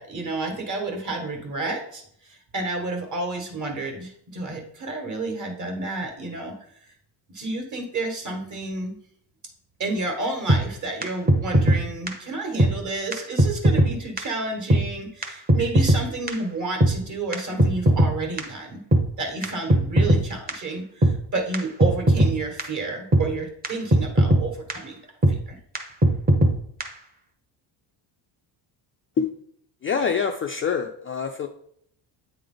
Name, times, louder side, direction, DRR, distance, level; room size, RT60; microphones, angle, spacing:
voice 1, 0.0-6.5 7.3-8.9 9.8-18.8 19.2-25.0 25.3-25.6, right 3 dB, 40° right, 3 dB, 1.6 m, -30 dB
sound 1, 10.5-10.6 11.0-11.1 11.3-11.8 12.1-12.2 12.6-12.7 13.1-13.2 13.4-13.9 14.2-14.3 14.7-14.8 15.2-15.3 15.5-16.0 16.3-16.4 16.8-16.9 17.3-18.1 18.4-18.5 18.9-19.0 19.4-19.5 19.7-20.2 20.5-20.6 21.0-21.1 21.5-21.6 21.8-22.3 22.6-22.7 23.1-23.2 23.6-23.7 23.9-24.4 24.7-24.8 25.2-25.3 25.7-25.8 26.0-26.5 26.8-26.9, right 1 dB, 20° right, 0.9 m, -17 dB
voice 2, 29.8-31.5, left 6 dB, 30° left, 3 dB, 0.4 m, -25 dB
8.5 x 3.4 x 3.8 m, 0.65 s
cardioid pair, 120°, 48 cm